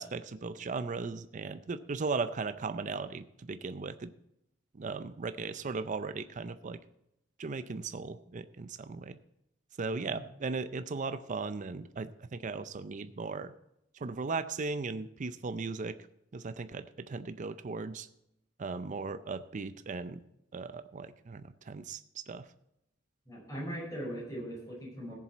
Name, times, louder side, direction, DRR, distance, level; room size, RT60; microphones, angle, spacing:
voice 1, 0.0-4.1 4.7-6.8 7.4-9.2 9.8-13.5 13.9-16.0 16.3-18.1 18.6-20.2 20.5-22.5, right 4 dB, 40° right, 12 dB, 0.5 m, -37 dB
voice 2, 23.3-25.1, equal, 20° left, -3 dB, 5.3 m, -39 dB
16.5 x 7.5 x 4.2 m, 0.82 s
head